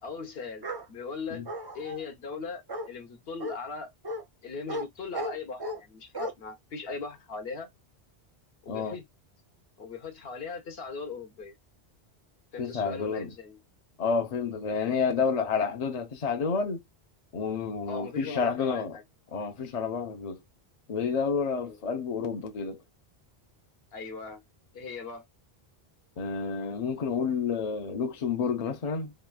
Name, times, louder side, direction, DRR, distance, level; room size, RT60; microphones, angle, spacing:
voice 1, 0.0-1.4 1.7-3.9 4.4-7.7 8.6-9.0 9.8-11.5 12.5-13.6 17.9-19.0 21.6-21.9 23.9-24.4 24.7-25.2, left 4 dB, 70° left, 1.0 m, -39 dB
Bark, 0.6-0.9 1.5-2.0 2.7-2.9 3.4-3.6 4.0-4.2 4.7-4.9 5.1-5.8 6.1-6.3, equal, 35° right, 0.4 m, -34 dB
voice 2, 12.6-13.3 14.0-16.8 17.3-18.9 19.3-20.4 20.9-22.8 26.2-29.1, left 5 dB, 45° left, 0.6 m, -29 dB
2.9 x 2.3 x 2.2 m
omnidirectional pair, 1.1 m